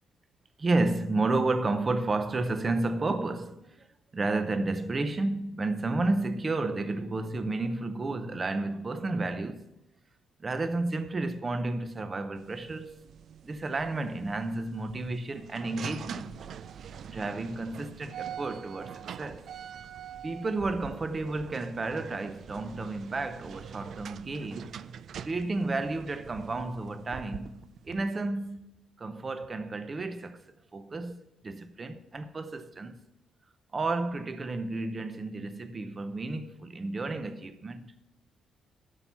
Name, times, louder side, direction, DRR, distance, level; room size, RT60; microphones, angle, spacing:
voice 1, 0.6-3.9 4.1-9.7 10.4-13.0 13.4-16.4 17.1-19.5 20.2-24.8 25.2-30.4 30.7-33.0 33.7-37.9, right 2 dB, 25° right, 0.7 m, -32 dB
sound 1, 12.4-28.0, right 8 dB, 50° right, 0.3 m, -44 dB
12.0 x 5.8 x 5.5 m
cardioid pair, 165°, 0 cm